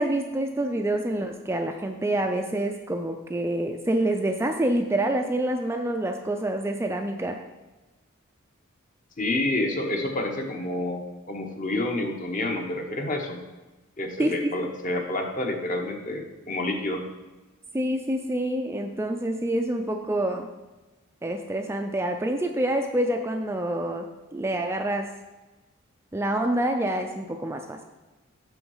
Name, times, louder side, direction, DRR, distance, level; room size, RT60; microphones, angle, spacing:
voice 1, 0.0-7.4 14.2-14.5 17.7-20.5 21.2-24.1 24.3-25.1 26.1-27.8, right 1 dB, 10° right, 4 dB, 0.3 m, -27 dB
voice 2, 9.2-13.4 14.0-17.0, left 2 dB, 40° left, 3 dB, 0.9 m, -29 dB
6.3 x 5.8 x 5.5 m, 1.1 s
head